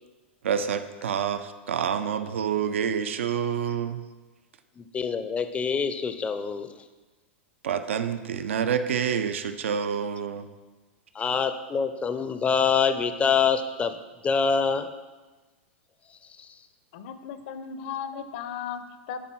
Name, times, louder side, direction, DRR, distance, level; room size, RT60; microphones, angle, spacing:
voice 1, 0.4-4.0 7.6-10.5, right 7 dB, 85° right, 10 dB, 0.4 m, -28 dB
voice 2, 4.8-6.7 11.1-14.0 14.2-14.9 16.4-16.5, left 6 dB, 20° left, 9 dB, 0.4 m, -25 dB
voice 3, 16.9-19.2, left 7 dB, 60° left, 10 dB, 0.6 m, -36 dB
8.1 x 3.6 x 4.5 m, 1.2 s
hypercardioid pair, 115°, 7 cm